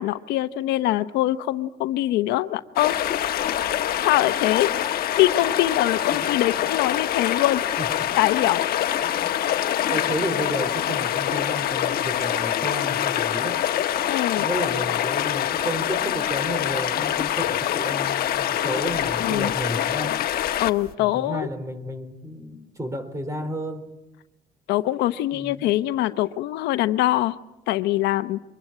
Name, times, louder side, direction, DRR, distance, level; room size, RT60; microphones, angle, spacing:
voice 1, 0.0-2.9 4.0-4.7 5.1-7.6 8.2-8.7 14.1-14.5 19.2-19.5 20.6-21.5 24.7-27.4 27.7-28.4, left 15 dB, 85° left, 12 dB, 0.9 m, -23 dB
sound 1, 2.8-20.9, left 11 dB, 65° left, 1.3 m, -25 dB
voice 2, 7.8-8.1 9.0-9.3 9.9-13.6 14.4-20.2 21.0-23.9 25.3-25.7, right 1 dB, 20° right, 11 dB, 3.7 m, -32 dB
24.5 x 21.5 x 8.9 m, 0.99 s
cardioid pair, 110°, 17 cm